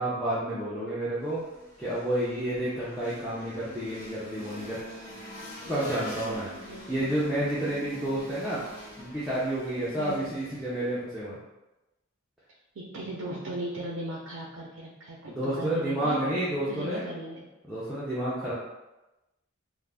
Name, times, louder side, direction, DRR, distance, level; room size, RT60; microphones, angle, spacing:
voice 1, 0.0-1.4 1.8-4.8 5.7-6.5 6.9-8.6 9.0-11.4 15.3-17.0 17.7-18.5, right 1 dB, ahead, -11 dB, 0.4 m, -30 dB
sound 1, 1.2-11.0, equal, 35° left, 1.2 m, -46 dB
Marimba xylophone, 2.9-8.1, equal, 60° left, 1.0 m, -49 dB
voice 2, 12.7-16.2 16.7-17.4, right 1 dB, 80° right, -2 dB, 0.4 m, -37 dB
2.4 x 2.0 x 3.3 m, 1.0 s
head